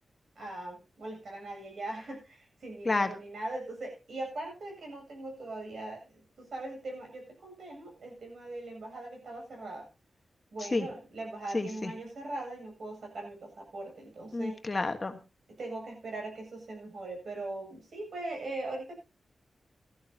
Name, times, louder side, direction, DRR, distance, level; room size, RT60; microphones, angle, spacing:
voice 1, 0.4-9.9 10.5-14.6 15.6-19.0, right 2 dB, 70° right, 2 dB, 7.7 m, -40 dB
voice 2, 11.5-11.9 14.3-15.2, left 3 dB, 30° left, 7 dB, 1.4 m, -30 dB
18.0 x 13.5 x 2.8 m, 0.29 s
wide cardioid pair, 140°, 0 cm